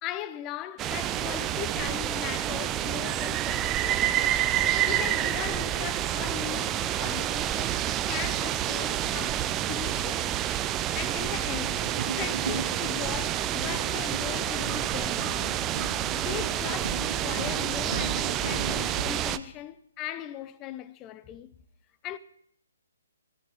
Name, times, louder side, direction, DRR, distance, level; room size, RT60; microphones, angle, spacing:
voice 1, 0.0-4.1 4.8-7.8 8.1-10.4 10.9-11.8 12.1-15.6 16.1-21.5 22.0-22.2, left 12 dB, 20° left, 0.8 m, -38 dB
sound 1, 0.8-19.4, right 11 dB, 20° right, 0.6 m, -28 dB
sound 2, 11.0-19.0, right 3 dB, 65° right, 2.2 m, -38 dB
17.5 x 14.5 x 3.6 m
figure-of-eight pair, 135°, 0 cm